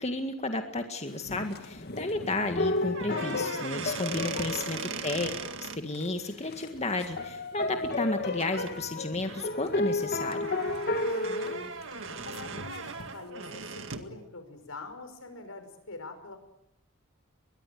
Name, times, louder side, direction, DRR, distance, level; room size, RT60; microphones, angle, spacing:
voice 1, 0.0-5.3 5.6-10.5, left 2 dB, 30° left, 5 dB, 2.0 m, -32 dB
sound 1, 1.2-5.6 5.9-6.1 6.4-13.1, left 2 dB, 50° left, 2.0 m, -33 dB
sound 2, 2.9-5.8 7.9-8.1 8.4-8.7 9.2-14.1, right 5 dB, 65° right, 2.0 m, -39 dB
voice 2, 10.9-11.7 12.2-16.4, left 3 dB, 85° left, 8 dB, 5.7 m, -45 dB
22.5 x 22.0 x 9.4 m, 0.77 s
head